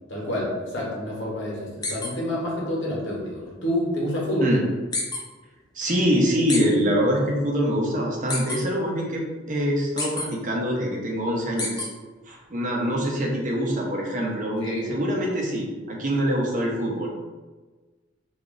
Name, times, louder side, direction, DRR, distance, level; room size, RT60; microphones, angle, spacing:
voice 1, 0.1-4.6 14.6-14.9, equal, 65° left, -4 dB, 1.0 m, -28 dB
sound 1, 1.8-2.1 4.9-5.2 6.5-6.6 8.3-8.6 10.0-10.3 11.6-11.9, left 3 dB, 20° left, 0.5 m, -27 dB
voice 2, 5.7-11.9 12.3-17.1, equal, 40° right, -1 dB, 0.6 m, -24 dB
3.0 x 2.5 x 3.7 m, 1.3 s
head